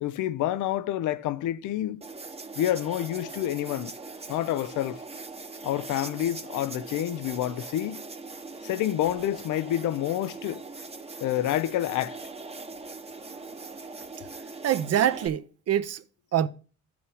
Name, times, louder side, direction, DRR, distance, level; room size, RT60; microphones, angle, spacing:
voice 1, 0.0-2.0 2.6-3.9 4.3-5.0 5.6-8.0 8.6-10.6 11.2-12.2, left 12 dB, 80° left, 0.6 m, -28 dB
sound 1, 2.0-15.3, right 3 dB, 20° right, 0.9 m, -41 dB
voice 2, 14.6-16.0 16.3-16.5, right 10 dB, 55° right, 0.7 m, -25 dB
14.0 x 5.0 x 3.4 m
cardioid pair, 90°, 30 cm